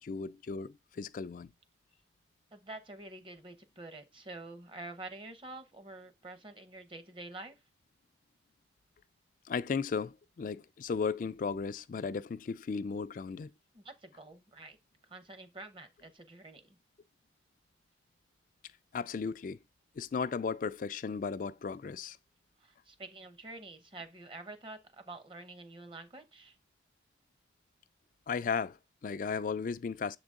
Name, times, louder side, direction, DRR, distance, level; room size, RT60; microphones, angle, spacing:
voice 1, 0.0-1.5 9.5-13.5 18.9-19.6 20.0-22.2 28.3-30.2, left 5 dB, 45° left, 0.3 m, -35 dB
voice 2, 2.5-7.6 13.7-14.8 15.1-16.8 22.6-26.6, right 2 dB, 30° right, 0.8 m, -47 dB
7.1 x 3.8 x 3.6 m
head